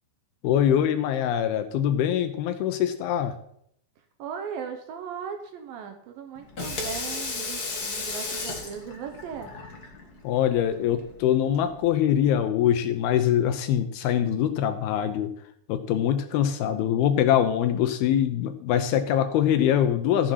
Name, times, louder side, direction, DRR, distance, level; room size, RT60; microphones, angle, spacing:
voice 1, 0.4-3.4 10.2-15.3 15.7-20.3, left 10 dB, 75° left, 8 dB, 2.5 m, -23 dB
voice 2, 4.2-9.5, right 7 dB, 70° right, 5 dB, 2.4 m, -37 dB
Water tap faucet / Sink (filling or washing), 6.4-11.9, left 3 dB, 50° left, 1.1 m, -35 dB
14.0 x 7.5 x 5.7 m, 0.69 s
omnidirectional pair, 4.9 m